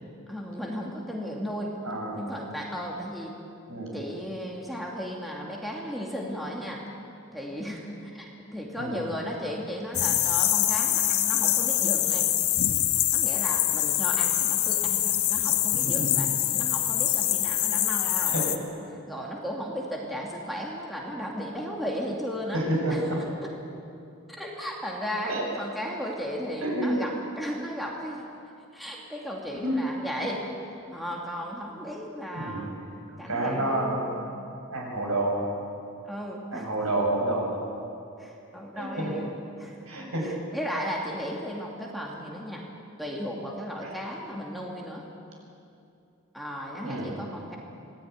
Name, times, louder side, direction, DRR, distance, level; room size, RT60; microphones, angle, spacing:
voice 1, 0.3-1.7 2.1-3.4 3.9-6.8 7.3-12.3 13.1-18.5 19.1-22.6 22.9-23.3 24.3-28.2 28.7-30.4 30.9-32.7 33.2-34.5 34.9-35.1 36.1-36.7 38.2-39.3 39.6-39.7 40.2-42.7 43.0-45.1 46.3-47.6, equal, ahead, -3 dB, 2.6 m, -35 dB
voice 2, 1.8-2.2 3.7-3.9 8.8-9.0 15.7-16.2 18.0-18.5 22.5-23.2 25.3-25.4 26.6-26.9 29.6-29.8 32.3-32.6 33.3-34.2 34.7-35.4 36.5-37.6 38.7-39.1 39.9-40.3 43.8-43.9 46.8-47.1, right 1 dB, 75° right, -1 dB, 7.6 m, -29 dB
sound 1, 9.9-18.6, left 12 dB, 85° left, 1.6 m, -24 dB
26.0 x 19.0 x 9.7 m, 2.6 s
head